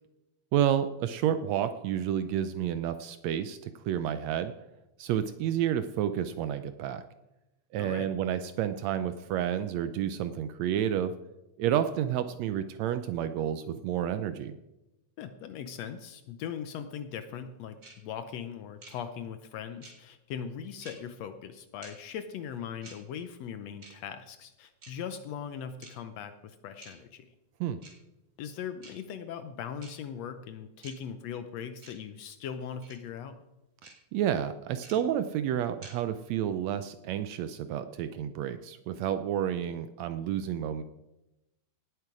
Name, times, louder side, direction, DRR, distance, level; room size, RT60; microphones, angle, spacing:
voice 1, 0.5-4.5 5.0-7.0 7.7-11.1 11.6-14.6 27.6-27.8 34.1-40.8, right 10 dB, 80° right, 11 dB, 1.6 m, -30 dB
voice 2, 7.8-8.1 15.2-27.3 28.4-33.4, left 8 dB, 75° left, 10 dB, 1.7 m, -40 dB
sound 1, 17.8-17.9 18.8-18.9 19.8-19.9 20.8-20.9 21.8-21.9 22.8-22.9 23.8-23.9 24.8-24.9 25.8-25.9 26.8-26.9 27.8-27.9 28.8-28.9 29.8-29.9 30.8-30.9 31.8-31.9 32.8-32.9 33.8-33.9 34.8-34.9 35.8-35.9, right 3 dB, 30° right, 2.9 m, -48 dB
18.5 x 7.9 x 4.9 m, 0.95 s
omnidirectional pair, 3.5 m